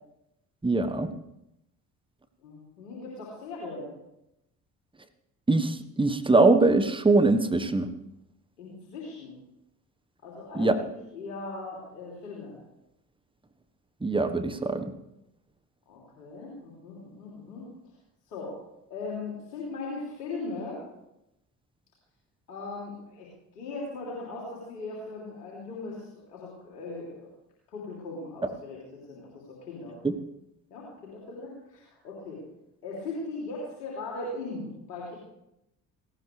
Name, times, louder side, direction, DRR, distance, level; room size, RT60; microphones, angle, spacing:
voice 1, 0.6-1.1 5.5-7.9 10.5-10.8 14.0-14.9 30.0-30.1, right 3 dB, 10° right, 9 dB, 1.4 m, -22 dB
voice 2, 2.4-3.9 8.6-9.3 10.2-12.5 15.9-17.7 18.3-18.6 18.9-20.8 22.5-23.3 23.6-27.3 27.7-28.8 29.1-30.0 30.7-32.4 32.8-35.2, left 3 dB, 80° left, -4 dB, 3.3 m, -39 dB
18.0 x 17.0 x 3.4 m, 0.87 s
hypercardioid pair, 50°, 48 cm